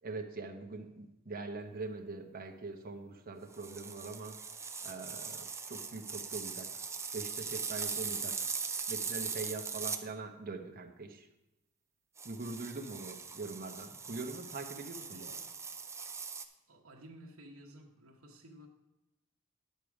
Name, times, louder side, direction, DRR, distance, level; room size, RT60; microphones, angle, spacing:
voice 1, 0.0-4.4 4.8-6.7 7.1-8.5 8.9-11.3 12.2-15.4, right 3 dB, 45° right, 3 dB, 0.9 m, -43 dB
sound 1, 3.5-10.0 12.2-16.4, right 5 dB, 15° right, 0.5 m, -40 dB
voice 2, 14.9-15.5 16.0-16.1 16.7-18.7, right 1 dB, 70° right, -1 dB, 1.2 m, -54 dB
10.0 x 6.9 x 4.7 m, 0.96 s
head